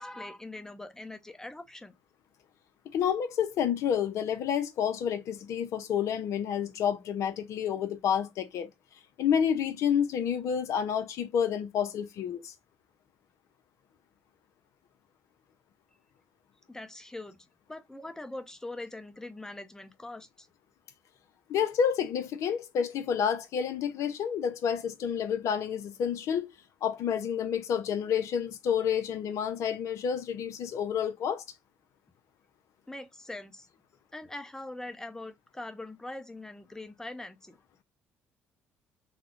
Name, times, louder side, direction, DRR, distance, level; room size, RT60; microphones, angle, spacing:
voice 1, 0.0-1.9 16.7-17.4 17.7-20.5 32.9-33.7 34.1-37.6, left 2 dB, 10° left, 0.7 m, -42 dB
voice 2, 2.9-8.7 9.2-12.5 21.5-26.5 26.8-31.4, left 8 dB, 65° left, 0.5 m, -29 dB
3.6 x 2.1 x 3.0 m
hypercardioid pair, 55°, 6 cm